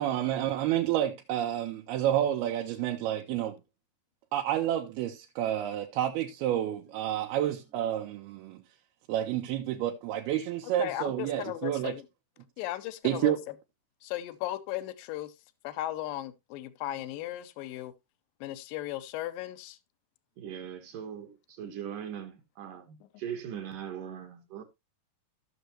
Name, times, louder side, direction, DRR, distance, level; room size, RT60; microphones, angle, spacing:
voice 1, 0.0-3.6 4.3-8.6 9.1-12.0 13.0-13.4, right 12 dB, 85° right, 2.8 m, -29 dB
voice 2, 10.8-12.0 12.6-13.3 14.0-15.3 15.6-17.9 18.4-19.8, left 14 dB, 75° left, 2.3 m, -36 dB
voice 3, 20.4-24.6, right 9 dB, 65° right, 2.4 m, -40 dB
15.0 x 6.4 x 2.9 m
omnidirectional pair, 4.4 m